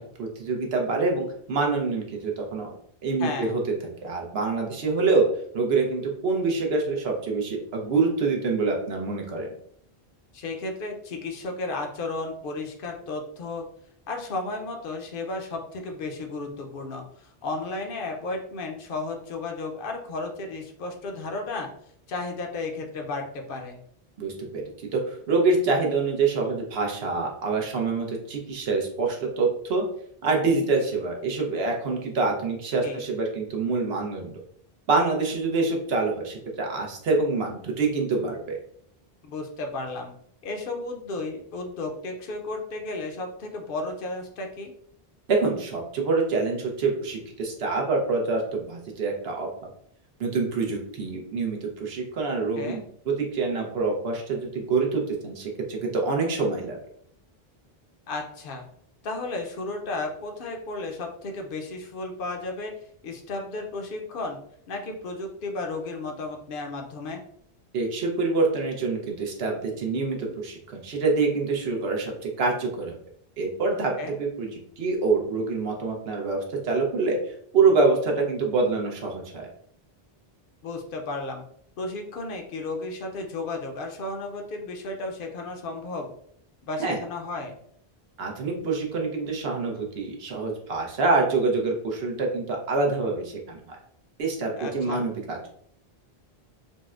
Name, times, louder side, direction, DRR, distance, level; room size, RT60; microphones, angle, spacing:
voice 1, 0.2-2.8 3.0-3.6 4.0-5.3 5.5-9.5 24.2-29.8 30.2-34.4 34.9-38.6 45.3-49.5 50.2-56.8 67.7-73.0 73.4-73.9 74.2-79.5 86.8-87.0 88.2-93.8 94.2-95.4, right 3 dB, 80° right, 0 dB, 0.9 m, -26 dB
voice 2, 3.2-3.6 10.3-13.7 14.1-21.7 22.1-23.8 32.8-33.1 39.2-40.1 40.4-44.7 52.5-52.8 58.1-58.6 59.0-62.7 63.0-64.4 64.7-67.2 74.0-74.2 80.6-81.4 81.8-86.1 86.6-87.5 94.6-95.1, left 2 dB, 65° left, 3 dB, 0.8 m, -33 dB
3.9 x 2.1 x 2.3 m, 0.65 s
omnidirectional pair, 1.0 m